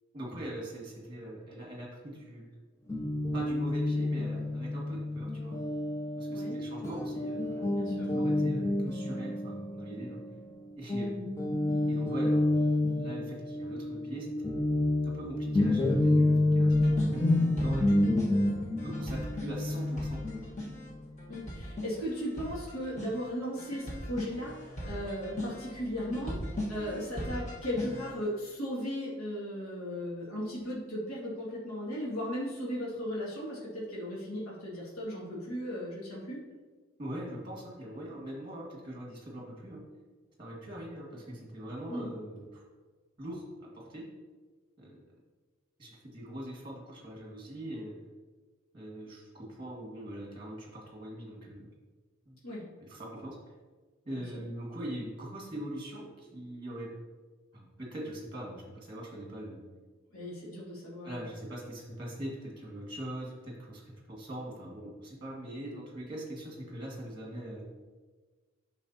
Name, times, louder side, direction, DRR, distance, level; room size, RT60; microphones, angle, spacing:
voice 1, 0.1-2.5 3.3-5.6 6.1-10.2 10.8-11.1 11.9-12.7 13.0-14.6 15.0-18.2 18.8-20.5 37.0-39.8 40.4-42.6 43.2-44.1 44.8-45.0 45.8-48.0 48.7-51.7 52.3-52.4 52.8-53.4 54.1-56.9 57.5-59.6 61.0-67.6, right 1 dB, 20° right, -2 dB, 1.9 m, -42 dB
Guitar, 2.9-10.6 10.9-21.3, left 1 dB, 15° left, 0.4 m, -29 dB
voice 2, 7.8-8.1 21.3-26.4 26.7-36.4 41.9-42.1 52.4-52.6 54.1-54.2 60.1-61.2, equal, 80° left, -6 dB, 2.2 m, -36 dB
sound 1, 16.7-28.2, equal, 35° left, 1.4 m, -40 dB
8.9 x 6.1 x 2.8 m, 1.4 s
head